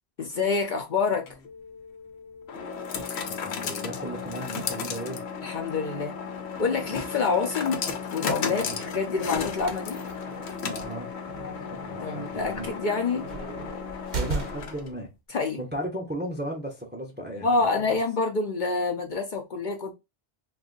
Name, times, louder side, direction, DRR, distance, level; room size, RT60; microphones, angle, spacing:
voice 1, 0.2-1.3 5.4-6.1 6.6-7.8 8.1-10.0 11.4-11.5 12.0-13.2 15.3-15.6 17.4-19.9, left 4 dB, 55° left, 0.7 m, -27 dB
sound 1, 1.1-15.0, left 5 dB, 80° left, 0.9 m, -35 dB
voice 2, 3.3-5.2 8.5-8.8 10.6-11.2 11.9-12.7 14.2-15.1 15.6-18.0, equal, 15° right, 0.5 m, -36 dB
sound 2, 9.6-14.9, right 4 dB, 50° right, 0.7 m, -37 dB
2.6 x 2.4 x 3.8 m
omnidirectional pair, 1.1 m